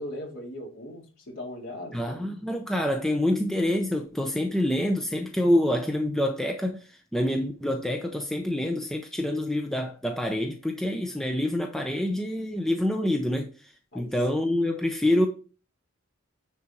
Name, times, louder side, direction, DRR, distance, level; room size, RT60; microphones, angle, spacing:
voice 1, 0.0-2.2 13.9-14.1, left 1 dB, 60° left, 4.1 m, -39 dB
voice 2, 1.9-6.8 7.1-13.5 13.9-15.3, left 1 dB, ahead, 0.7 m, -26 dB
9.9 x 4.5 x 4.4 m
head